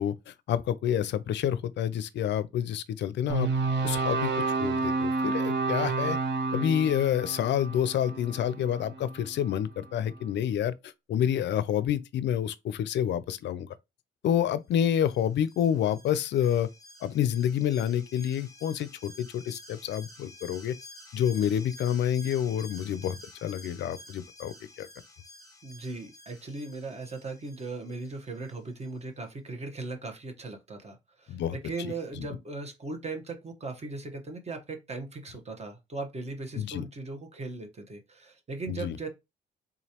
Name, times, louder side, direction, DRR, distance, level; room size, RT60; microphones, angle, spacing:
voice 1, 0.0-3.5 3.8-6.2 6.5-10.7 11.1-13.7 14.2-16.7 17.0-20.7 21.1-24.5 24.8-24.9 31.3-31.5 32.2-32.3 36.6-36.8 38.7-39.0, left 10 dB, 65° left, 0.4 m, -28 dB
sound 1, 3.3-9.5, right 3 dB, 60° right, 0.9 m, -30 dB
Alarm, 15.0-28.5 28.8-28.9, left 1 dB, 15° left, 0.9 m, -50 dB
voice 2, 25.6-39.1, right 3 dB, 35° right, 1.1 m, -38 dB
3.8 x 3.0 x 2.8 m
cardioid pair, 90°, 20 cm